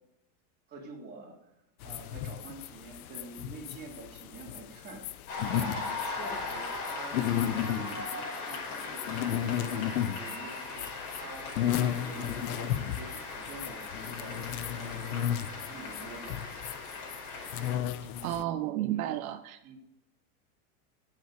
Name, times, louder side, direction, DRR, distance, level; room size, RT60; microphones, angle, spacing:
voice 1, 0.7-1.5 1.8-14.5 14.7-15.2 15.5-16.6 18.9-19.2 19.6-19.8, right 3 dB, 20° right, -3 dB, 3.6 m, -47 dB
sound 1, 1.8-18.4, left 11 dB, 75° left, 1.0 m, -34 dB
Cheering / Applause, 5.3-17.8, left 3 dB, 45° left, 5.1 m, -39 dB
voice 2, 18.2-19.7, right 13 dB, 70° right, 9 dB, 0.8 m, -32 dB
17.0 x 7.7 x 5.1 m, 0.86 s
supercardioid pair, 165°, 44 cm